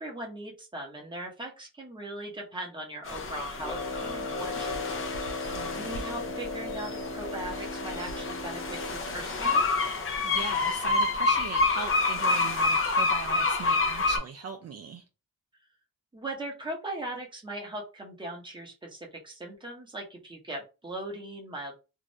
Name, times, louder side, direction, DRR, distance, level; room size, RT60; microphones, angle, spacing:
voice 1, 0.0-9.7 16.1-21.7, right 1 dB, 15° right, 1.0 m, -39 dB
sound 1, 3.0-14.2, left 3 dB, 40° left, 0.7 m, -28 dB
Brass instrument, 3.6-9.2, left 2 dB, 5° left, 1.0 m, -36 dB
voice 2, 5.5-5.9 10.2-15.0, right 5 dB, 50° right, 0.4 m, -39 dB
2.7 x 2.5 x 3.1 m
wide cardioid pair, 150°, 34 cm